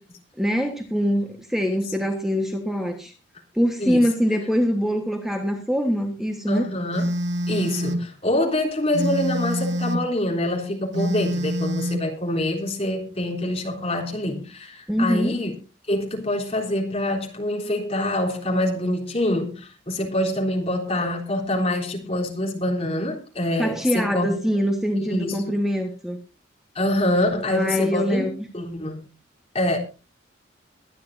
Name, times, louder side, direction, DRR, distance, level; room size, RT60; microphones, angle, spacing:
voice 1, 0.4-3.1 3.5-6.7 14.9-15.3 23.6-26.2 27.5-28.5, equal, ahead, 1.4 m, -23 dB
voice 2, 6.5-7.1 7.5-15.5 15.9-24.3 25.0-25.4 26.8-28.3 28.5-29.1 29.5-29.8, left 1 dB, 30° left, 3.7 m, -25 dB
Telephone, 6.9-8.1 8.9-10.1 10.9-12.1, equal, 60° right, 1.7 m, -26 dB
22.5 x 10.5 x 2.7 m
head